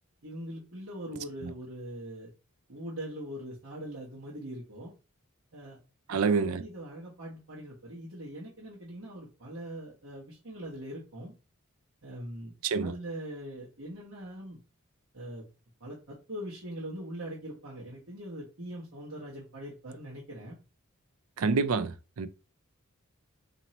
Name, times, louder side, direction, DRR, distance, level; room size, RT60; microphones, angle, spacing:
voice 1, 0.2-2.3 2.7-4.9 5.5-5.8 6.1-11.3 12.0-12.5 12.8-14.6 15.1-15.4 15.8-20.6, right 1 dB, 65° right, 1.1 m, -42 dB
voice 2, 6.1-6.6 12.6-12.9 21.4-22.3, right 4 dB, 85° right, 0.5 m, -27 dB
3.0 x 2.7 x 4.1 m
head